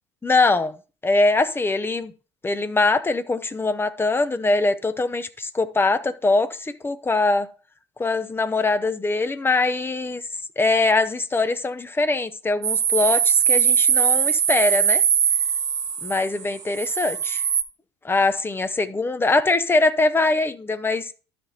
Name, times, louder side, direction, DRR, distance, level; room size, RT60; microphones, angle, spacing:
voice 1, 0.2-0.7 1.0-2.1 2.4-7.5 8.0-10.2 10.6-15.0 16.0-17.4 18.0-21.1, left 3 dB, 15° left, 0.7 m, -22 dB
sound 1, 12.6-17.6, right 8 dB, 50° right, 0.8 m, -21 dB
12.5 x 5.1 x 2.8 m
hypercardioid pair, 60°, 15 cm